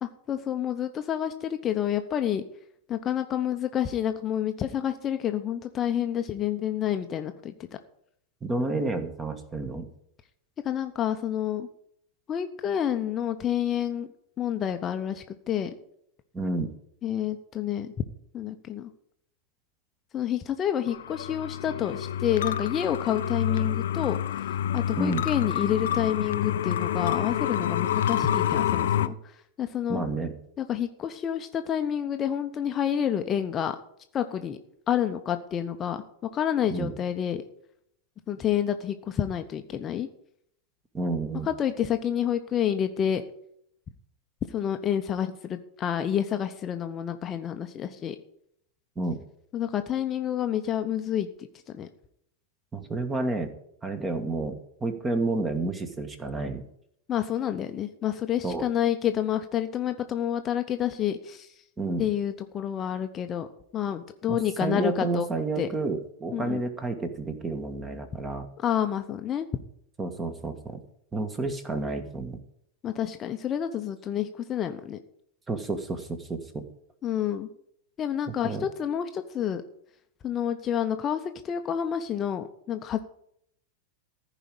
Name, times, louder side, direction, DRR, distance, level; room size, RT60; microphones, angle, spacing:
voice 1, 0.0-2.4 2.9-7.5 10.6-11.7 12.3-14.1 14.4-15.7 17.0-17.9 18.3-18.9 20.1-30.0 30.6-33.8 34.1-34.6 34.9-36.0 36.3-37.4 38.3-40.1 41.5-43.2 44.5-48.2 49.5-51.5 51.7-51.9 57.1-61.5 62.0-63.5 63.7-65.3 65.6-65.7 66.3-66.6 68.6-69.5 72.8-75.0 77.0-77.5 78.0-79.6 80.2-83.0, left 10 dB, 25° left, 7 dB, 0.8 m, -29 dB
voice 2, 8.4-9.9 16.3-16.7 24.9-25.3 29.9-30.4 36.7-36.9 40.9-41.5 49.0-49.2 52.7-53.5 53.8-56.6 58.4-58.6 61.8-62.1 64.3-68.5 70.0-70.8 71.1-72.4 75.5-76.7 78.3-78.7, right 3 dB, 15° right, 9 dB, 1.5 m, -30 dB
sound 1, 20.9-29.1, left 10 dB, 60° left, 0.5 m, -28 dB
15.0 x 5.0 x 8.8 m, 0.71 s
figure-of-eight pair, 90°, 0 cm